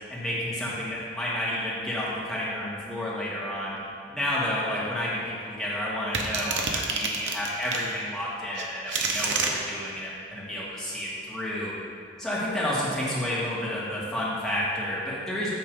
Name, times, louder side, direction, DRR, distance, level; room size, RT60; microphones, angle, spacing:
voice 1, 0.1-3.8 4.1-11.7 12.2-15.5, left 1 dB, ahead, -8 dB, 1.7 m, -30 dB
sound 1, 6.1-7.9 8.5-9.5, right 4 dB, 85° right, 0.8 m, -28 dB
9.2 x 3.1 x 6.6 m, 2.5 s
head